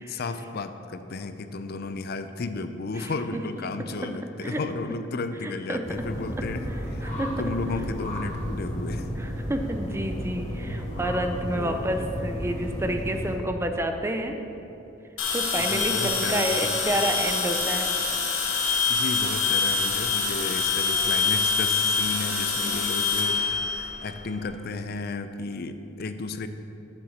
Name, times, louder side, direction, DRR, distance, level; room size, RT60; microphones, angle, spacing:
voice 1, 0.1-9.1 11.6-11.9 15.6-16.9 18.9-26.5, left 3 dB, 50° left, 10 dB, 0.5 m, -33 dB
voice 2, 3.0-3.4 4.4-4.6 5.4-5.8 7.0-7.3 9.2-14.4 15.3-17.9, right 1 dB, 15° right, 5 dB, 0.5 m, -29 dB
sound 1, 5.8-13.4, equal, 35° left, 2.1 m, -33 dB
sound 2, 15.2-24.4, left 4 dB, 80° left, 1.4 m, -25 dB
7.1 x 6.6 x 7.3 m, 2.8 s
head